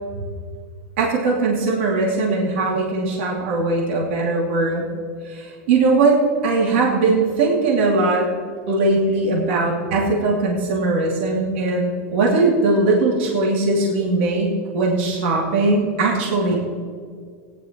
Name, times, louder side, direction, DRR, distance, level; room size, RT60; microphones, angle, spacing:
voice 1, 1.0-4.9 5.2-6.2 6.4-8.3 8.7-16.6, right 3 dB, 60° right, -3 dB, 2.6 m, -20 dB
18.0 x 10.5 x 3.0 m, 2.1 s
supercardioid pair, 175°, 7 cm